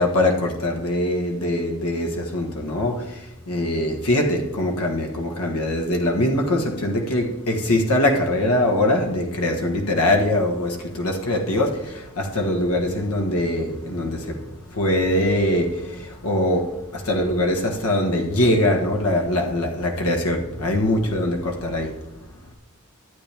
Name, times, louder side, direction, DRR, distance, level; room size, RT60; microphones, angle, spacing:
voice 1, 0.0-22.1, left 1 dB, 85° left, 1.3 m, -22 dB
13.0 x 8.7 x 3.4 m
head